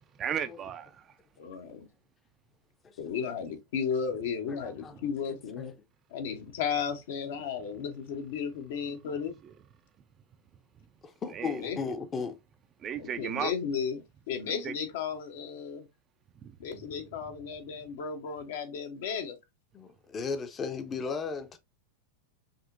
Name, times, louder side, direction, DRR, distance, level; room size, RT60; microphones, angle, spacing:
voice 1, 0.1-1.1 9.4-9.5 11.3-11.6 12.8-13.5 14.5-14.7 16.4-16.6, right 8 dB, 30° right, 0.4 m, -35 dB
voice 2, 1.4-1.9 3.0-5.7 6.1-9.3 11.4-11.8 13.0-15.9 16.6-19.4, left 6 dB, 55° left, 0.9 m, -34 dB
voice 3, 4.5-4.9 5.6-5.7 11.0-12.4 19.7-21.6, left 5 dB, 20° left, 0.6 m, -35 dB
5.3 x 2.8 x 2.5 m
figure-of-eight pair, 90°, 0 cm